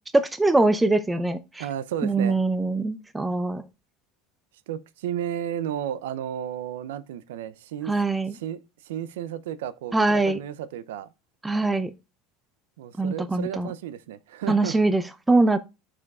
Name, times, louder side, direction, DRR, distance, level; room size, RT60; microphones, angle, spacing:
voice 1, 0.1-1.6 2.0-3.6 7.9-8.3 9.9-10.4 11.4-11.9 13.0-13.7 14.5-15.6, right 2 dB, 10° right, 0.5 m, -22 dB
voice 2, 1.6-2.4 4.7-7.9 8.3-11.1 12.8-14.8, right 10 dB, 80° right, 0.5 m, -33 dB
11.5 x 5.0 x 2.3 m
hypercardioid pair, 85°, 0 cm